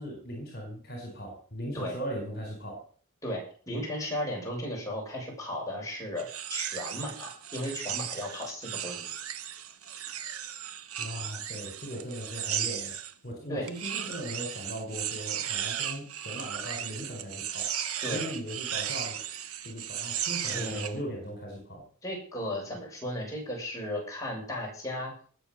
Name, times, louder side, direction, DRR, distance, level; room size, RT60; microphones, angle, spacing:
voice 1, 0.0-2.8 11.0-13.0 13.2-17.7 18.1-19.2 19.6-21.8, equal, 45° left, 2 dB, 4.4 m, -38 dB
voice 2, 3.2-9.1 13.5-13.7 18.0-18.3 20.5-21.0 22.0-25.1, left 1 dB, 15° left, -2 dB, 7.2 m, -35 dB
sound 1, 6.2-13.1 13.7-20.9, right 10 dB, 85° right, 1.2 m, -35 dB
19.5 x 7.1 x 6.6 m, 0.44 s
head